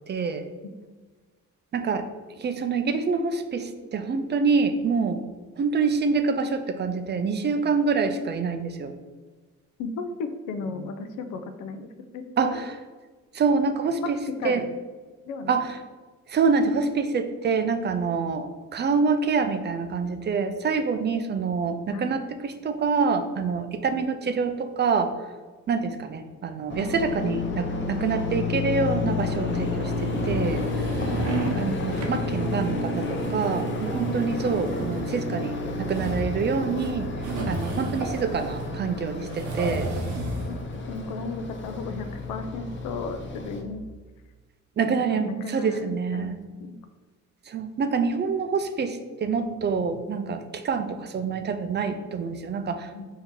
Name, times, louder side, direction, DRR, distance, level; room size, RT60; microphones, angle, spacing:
voice 1, 0.1-0.5 1.7-2.0 2.4-5.2 5.6-8.9 12.4-12.8 13.3-14.6 15.5-15.8 16.3-25.1 25.7-30.6 31.6-37.1 37.5-39.9 44.8-46.4 47.5-52.9, right 5 dB, 35° right, 8 dB, 0.4 m, -26 dB
voice 2, 9.8-11.9 12.1-12.6 14.4-14.7 15.3-15.6 21.9-22.2 31.0-31.4 40.5-40.6 40.9-43.8 45.1-46.8 52.9-53.1, left 4 dB, 80° left, 8 dB, 0.5 m, -35 dB
sound 1, 26.7-43.6, left 3 dB, 40° left, 0.7 m, -30 dB
sound 2, 30.0-31.6 31.9-32.2 32.9-38.7 39.3-40.5, right 2 dB, 70° right, 0.8 m, -33 dB
4.4 x 2.8 x 3.6 m, 1.3 s
cardioid pair, 90°, 30 cm